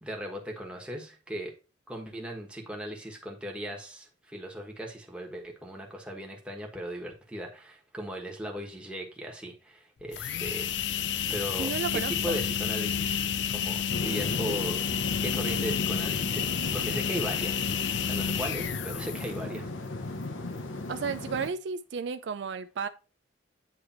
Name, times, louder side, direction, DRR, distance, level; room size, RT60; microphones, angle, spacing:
voice 1, 0.0-1.5 1.9-10.7 11.3-14.8 15.2-17.6 18.0-19.7, equal, 5° right, 1.3 m, -37 dB
sound 1, 10.0-19.5, left 8 dB, 65° left, 0.5 m, -30 dB
voice 2, 11.6-12.4 20.9-22.9, right 5 dB, 65° right, 0.4 m, -33 dB
sound 2, 13.9-21.5, left 2 dB, 85° left, 1.0 m, -36 dB
8.8 x 3.3 x 4.3 m
head